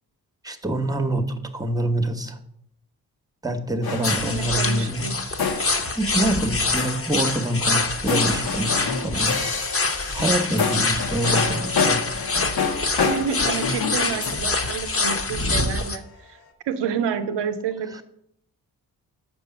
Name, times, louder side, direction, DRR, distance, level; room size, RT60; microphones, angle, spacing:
voice 1, 0.4-2.4 3.4-5.1 5.9-9.3 10.1-12.0, right 1 dB, 10° right, 8 dB, 1.2 m, -26 dB
sound 1, 3.8-15.7, left 5 dB, 60° left, 1.2 m, -29 dB
sound 2, 4.0-16.0, left 3 dB, 35° left, 1.2 m, -25 dB
voice 2, 4.2-5.3 13.1-16.4 16.6-18.0, right 7 dB, 85° right, 11 dB, 0.8 m, -29 dB
7.5 x 5.3 x 5.9 m, 0.75 s
supercardioid pair, 50°, 41 cm